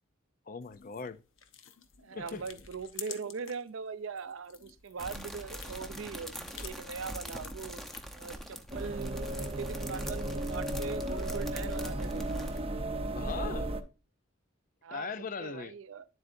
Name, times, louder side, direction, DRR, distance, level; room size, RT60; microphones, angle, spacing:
voice 1, 0.5-1.2 2.1-2.4 13.1-13.7 14.9-15.7, left 5 dB, 40° left, 0.5 m, -39 dB
sound 1, 0.6-3.7 4.0-8.3, left 8 dB, 75° left, 0.9 m, -49 dB
voice 2, 2.0-7.8 8.1-12.3 14.8-16.1, right 5 dB, 80° right, 0.6 m, -41 dB
sound 2, 5.0-12.6, equal, ahead, 0.8 m, -43 dB
sound 3, 8.7-13.8, right 1 dB, 30° right, 0.7 m, -35 dB
10.5 x 7.8 x 2.6 m
head